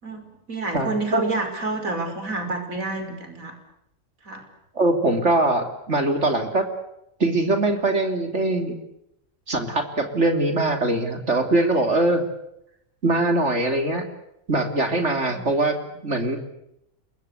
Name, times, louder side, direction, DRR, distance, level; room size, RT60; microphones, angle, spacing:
voice 1, 0.0-3.6 4.2-4.5 15.3-15.5, right 2 dB, 75° right, 6 dB, 5.9 m, -29 dB
voice 2, 0.7-1.2 4.7-6.7 7.2-8.7 9.5-12.2 13.0-14.0 14.5-15.8 16.0-16.4, right 2 dB, 55° right, 6 dB, 3.5 m, -22 dB
28.0 x 23.0 x 8.2 m, 0.80 s
omnidirectional pair, 1.4 m